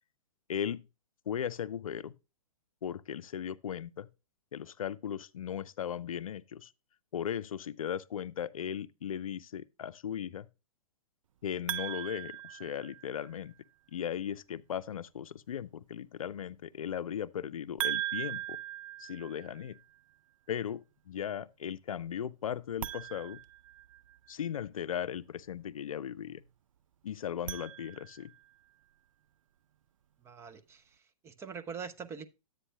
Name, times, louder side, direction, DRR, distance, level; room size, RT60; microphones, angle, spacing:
voice 1, 0.5-0.9 1.3-2.1 2.8-4.1 4.5-6.7 7.1-10.5 11.4-13.5 13.9-18.6 19.0-19.8 20.5-23.4 24.3-26.4 27.0-28.3, left 9 dB, 70° left, 0.5 m, -37 dB
sound 1, 11.7-13.4 17.8-19.8 22.7-24.3 27.2-28.4, right 13 dB, 65° right, 0.5 m, -39 dB
voice 2, 30.2-30.8 31.2-32.3, right 6 dB, 15° right, 0.6 m, -43 dB
11.0 x 8.2 x 2.2 m
hypercardioid pair, 120°, 18 cm